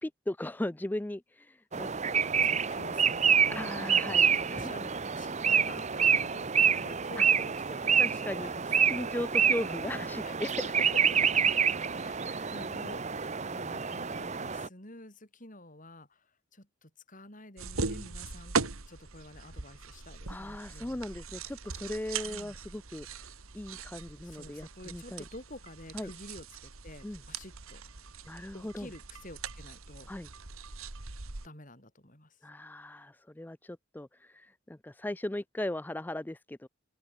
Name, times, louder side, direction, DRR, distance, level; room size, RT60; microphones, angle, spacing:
voice 1, 0.0-2.4 3.5-4.7 7.2-7.3 8.0-8.5 8.9-10.6 12.2-12.5 20.3-25.2 25.9-26.1 27.0-27.2 28.3-28.9 30.1-30.3 32.4-36.7, left 1 dB, 10° left, 0.4 m, -38 dB
sound 1, 1.7-14.7, right 7 dB, 35° right, 0.8 m, -27 dB
voice 2, 2.4-3.7 4.1-9.1 10.2-10.4 10.6-10.7 11.1-11.2 11.9-21.0 22.2-22.6 24.2-27.8 28.5-30.1 31.4-32.4, left 1 dB, 40° left, 6.7 m, -50 dB
sound 2, 17.6-31.5, right 4 dB, 90° right, 2.1 m, -40 dB
open air
head